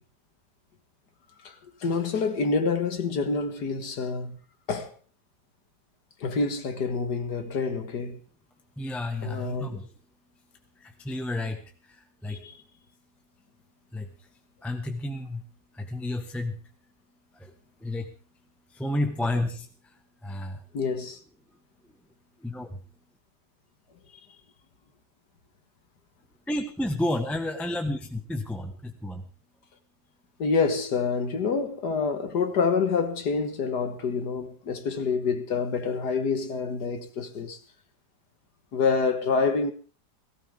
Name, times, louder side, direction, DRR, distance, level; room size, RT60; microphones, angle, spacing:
voice 1, 1.4-4.4 4.7-4.9 6.2-8.2 9.2-9.8 12.3-12.6 20.7-21.2 30.4-37.6 38.7-39.7, left 4 dB, 70° left, 2.1 m, -27 dB
voice 2, 8.8-9.9 10.8-12.4 13.9-14.1 14.6-15.4 15.7-16.6 17.3-17.5 17.8-18.1 18.7-19.9 20.2-20.6 22.4-22.8 26.5-29.2, left 1 dB, ahead, 1.3 m, -31 dB
18.5 x 16.5 x 3.7 m
omnidirectional pair, 1.9 m